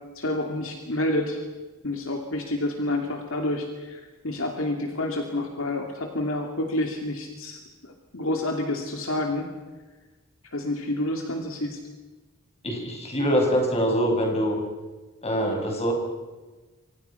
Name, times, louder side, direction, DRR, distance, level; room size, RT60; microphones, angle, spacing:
voice 1, 0.1-1.4 1.8-9.5 10.5-11.8, left 1 dB, 60° left, 3 dB, 2.7 m, -29 dB
voice 2, 12.6-14.6 15.2-15.9, equal, 30° left, 2 dB, 5.8 m, -24 dB
29.0 x 25.0 x 5.8 m, 1.2 s
head